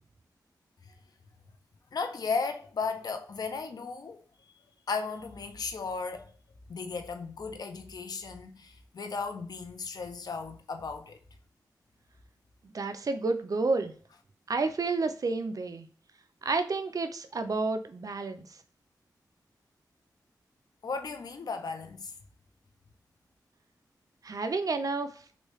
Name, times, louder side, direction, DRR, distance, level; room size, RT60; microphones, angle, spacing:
voice 1, 1.9-4.2 4.9-6.3 6.7-11.2 20.8-22.1, left 4 dB, 60° left, 0.5 m, -35 dB
voice 2, 12.6-13.9 14.5-15.9 16.4-18.4 24.2-25.1, right 3 dB, 55° right, 0.5 m, -30 dB
3.1 x 2.7 x 3.1 m
cardioid pair, 70°, 7 cm